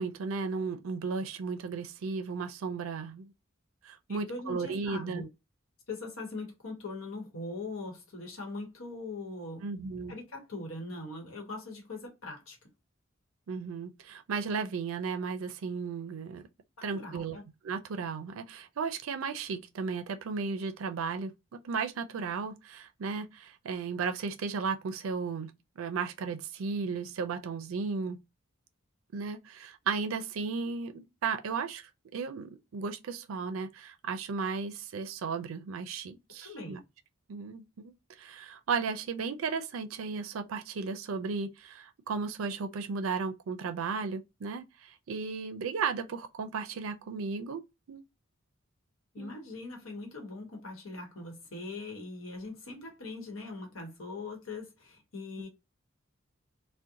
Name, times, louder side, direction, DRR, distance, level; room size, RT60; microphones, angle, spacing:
voice 1, 0.0-3.3 3.8-5.2 9.6-10.2 13.5-16.5 16.8-17.4 17.6-21.3 21.6-28.2 29.1-36.8 37.3-47.6 47.9-48.0 49.2-49.4, right 5 dB, 85° right, 0.4 m, -35 dB
voice 2, 4.1-5.3 5.9-9.7 10.1-12.6 16.8-17.4 36.4-36.8 49.1-55.5, left 2 dB, 90° left, 1.0 m, -41 dB
2.7 x 2.1 x 2.5 m
head